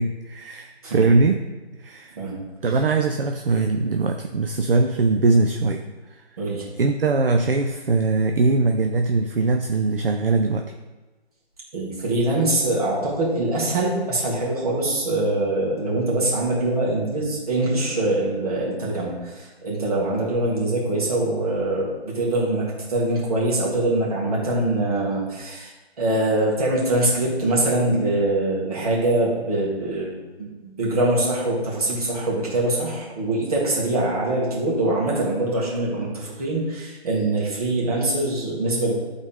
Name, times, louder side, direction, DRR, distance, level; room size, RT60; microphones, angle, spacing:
voice 1, 0.0-1.4 1.8-2.2 2.6-6.2 6.8-10.6, right 3 dB, 60° right, 5 dB, 0.6 m, -21 dB
voice 2, 6.4-6.7 11.7-30.1 30.4-38.9, right 2 dB, 35° right, -5 dB, 2.4 m, -23 dB
11.0 x 4.1 x 3.6 m, 1.2 s
figure-of-eight pair, 165°, 33 cm